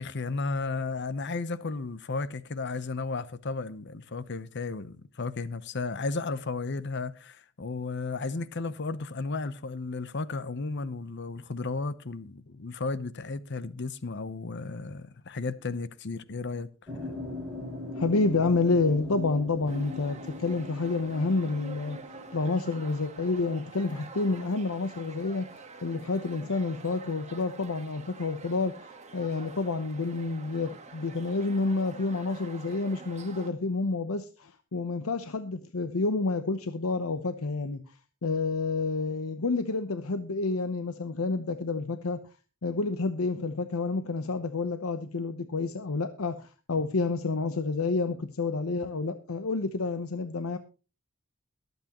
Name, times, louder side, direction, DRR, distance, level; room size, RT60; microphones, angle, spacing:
voice 1, 0.0-16.7, left 3 dB, 55° left, 0.8 m, -34 dB
sound 1, 16.9-22.4, left 2 dB, 5° right, 8.0 m, -40 dB
voice 2, 17.9-22.0 22.3-25.5 25.8-37.8 38.2-42.2 42.6-50.6, left 3 dB, 85° left, 0.8 m, -29 dB
sound 2, 19.7-33.5, right 4 dB, 35° right, 1.5 m, -47 dB
22.0 x 8.2 x 3.0 m
head